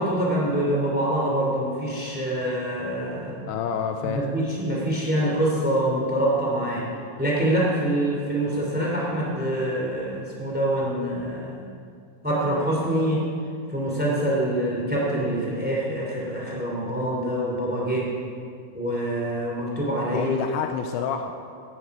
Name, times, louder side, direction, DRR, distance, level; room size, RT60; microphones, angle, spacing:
voice 1, 0.0-3.4 4.0-6.9 7.2-11.6 12.2-13.2 13.7-18.1 18.7-20.3, right 1 dB, 5° right, -4 dB, 1.0 m, -25 dB
voice 2, 3.5-4.2 20.1-21.3, left 7 dB, 85° left, 5 dB, 2.7 m, -28 dB
16.5 x 11.0 x 4.8 m, 2.3 s
omnidirectional pair, 5.7 m